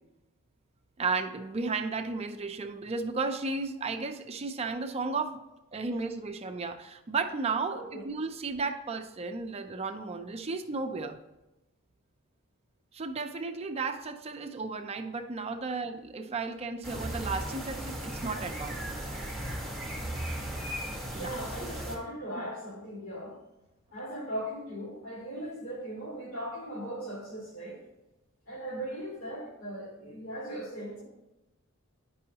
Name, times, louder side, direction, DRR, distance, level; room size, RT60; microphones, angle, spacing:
voice 1, 1.0-5.4 5.7-11.2 12.9-18.8 21.1-21.4, right 4 dB, 30° right, 6 dB, 0.5 m, -34 dB
voice 2, 7.7-8.1 21.1-23.4 23.9-27.8 28.5-31.0, right 1 dB, 75° left, -4 dB, 2.7 m, -38 dB
sound 1, 16.8-22.0, right 1 dB, 5° left, 1.5 m, -36 dB
9.5 x 5.4 x 2.8 m, 1.0 s
head